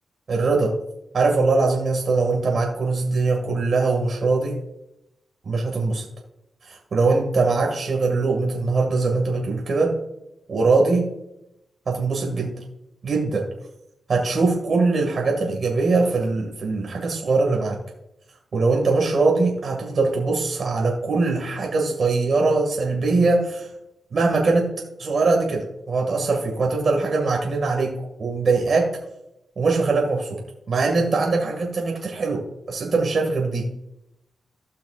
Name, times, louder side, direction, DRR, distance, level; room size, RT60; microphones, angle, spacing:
voice 1, 0.3-0.7 1.1-4.6 5.4-6.0 6.6-9.9 10.5-11.1 11.9-12.5 13.0-13.4 14.1-17.8 18.5-23.7 24.1-24.7 25.0-27.9 28.2-28.9 29.6-30.4 30.7-33.6, right 3 dB, 65° right, 0 dB, 2.1 m, -22 dB
16.5 x 5.7 x 2.5 m, 0.85 s
cardioid pair, 55°, 0 cm